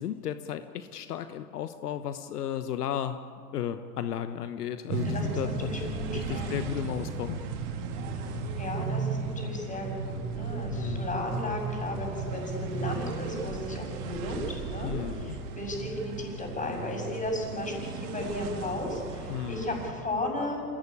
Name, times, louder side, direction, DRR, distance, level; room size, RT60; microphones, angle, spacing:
voice 1, 0.0-3.2 3.5-7.4 10.7-11.2 14.8-15.3 19.3-19.6, left 9 dB, 70° left, 10 dB, 1.2 m, -34 dB
sound 1, 4.9-19.9, right 4 dB, 50° right, 3.3 m, -35 dB
voice 2, 5.0-6.6 8.6-20.6, left 1 dB, 15° left, 2 dB, 6.9 m, -35 dB
26.5 x 17.0 x 8.7 m, 2.5 s
hypercardioid pair, 105°, 48 cm